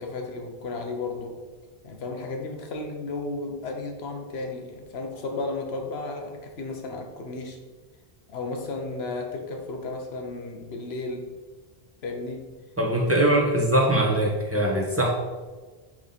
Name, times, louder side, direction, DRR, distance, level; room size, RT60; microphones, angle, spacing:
voice 1, 0.0-1.4 1.8-7.6 8.3-11.3 12.0-12.5 13.1-13.6, left 3 dB, 80° left, 3 dB, 1.2 m, -34 dB
voice 2, 12.8-15.1, right 1 dB, 15° right, -3 dB, 1.2 m, -22 dB
8.9 x 3.5 x 4.0 m, 1.3 s
omnidirectional pair, 1.1 m